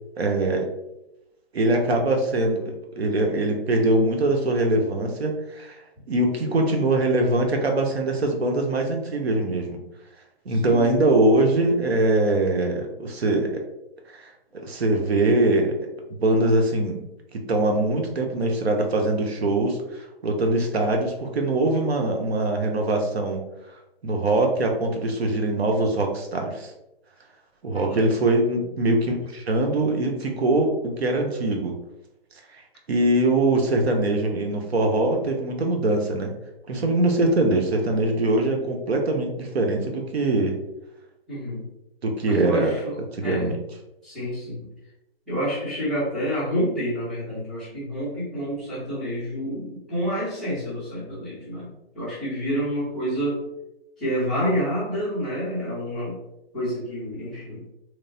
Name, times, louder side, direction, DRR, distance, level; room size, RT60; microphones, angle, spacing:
voice 1, 0.2-0.7 1.5-5.8 6.1-9.8 10.5-13.5 14.1-14.2 14.6-15.8 16.2-17.0 17.5-23.4 24.0-26.7 27.6-31.8 32.9-36.3 36.7-40.6 42.0-42.7 43.1-43.6, right 2 dB, 85° right, 3 dB, 0.7 m, -22 dB
voice 2, 10.5-10.9 27.7-28.1 41.3-41.6 42.3-43.5 44.0-44.7 45.3-51.7 51.9-53.5 54.0-56.2 56.5-57.6, equal, ahead, -14 dB, 0.7 m, -28 dB
3.0 x 2.1 x 2.6 m, 0.90 s
hypercardioid pair, 155°, 31 cm